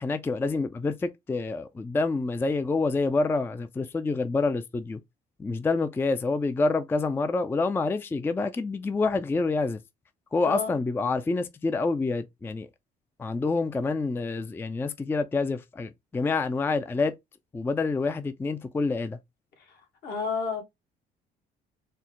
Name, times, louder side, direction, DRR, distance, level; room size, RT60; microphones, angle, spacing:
voice 1, 0.0-5.0 5.4-9.8 10.3-12.7 13.2-17.1 17.5-19.2, left 3 dB, 15° left, 0.3 m, -27 dB
voice 2, 10.4-10.7 19.6-20.6, left 5 dB, 75° left, 1.8 m, -32 dB
4.3 x 2.0 x 3.7 m
cardioid pair, 110°, 17 cm